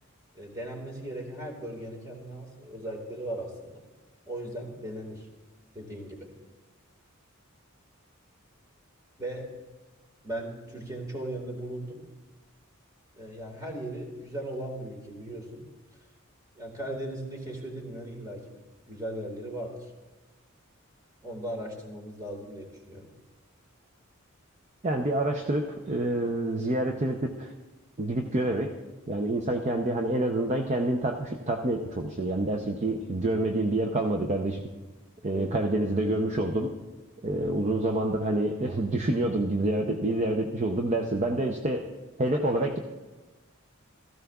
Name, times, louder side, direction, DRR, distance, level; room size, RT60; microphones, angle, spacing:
voice 1, 0.3-3.8 4.3-5.3 5.7-6.3 9.2-9.5 10.2-12.1 13.1-15.7 16.6-19.9 21.2-23.1 35.3-35.5, right 1 dB, 15° right, 1 dB, 1.8 m, -38 dB
voice 2, 24.8-27.5 28.0-28.8 29.1-34.6 35.2-36.7 37.2-41.9 42.2-42.8, right 1 dB, 35° right, 4 dB, 0.6 m, -27 dB
16.0 x 14.0 x 2.3 m, 1.2 s
head